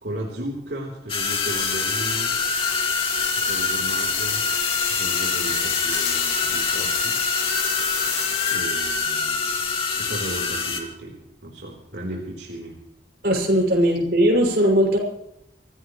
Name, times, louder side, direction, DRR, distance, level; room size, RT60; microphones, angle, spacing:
voice 1, 0.0-2.3 3.5-4.4 4.9-7.2 8.5-9.6 10.0-12.8, right 1 dB, 90° right, -2 dB, 3.8 m, -35 dB
sound 1, 1.1-10.8, left 4 dB, 30° left, 2.4 m, -25 dB
sound 2, 1.3-8.8, left 9 dB, 90° left, 2.8 m, -33 dB
voice 2, 13.2-15.0, equal, 60° right, 0 dB, 6.6 m, -19 dB
25.0 x 16.5 x 3.2 m, 0.80 s
head